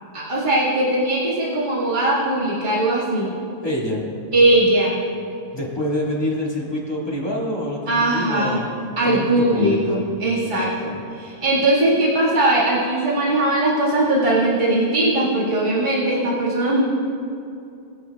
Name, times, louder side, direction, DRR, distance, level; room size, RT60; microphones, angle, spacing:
voice 1, 0.1-3.3 4.3-5.0 7.9-8.6 9.0-10.9 11.2-16.8, right 1 dB, 35° right, -8 dB, 2.0 m, -19 dB
voice 2, 3.6-4.0 5.5-8.7 9.0-10.0 10.4-11.0, left 1 dB, 20° left, -5 dB, 2.0 m, -26 dB
21.5 x 8.7 x 2.3 m, 2.7 s
omnidirectional pair, 1.4 m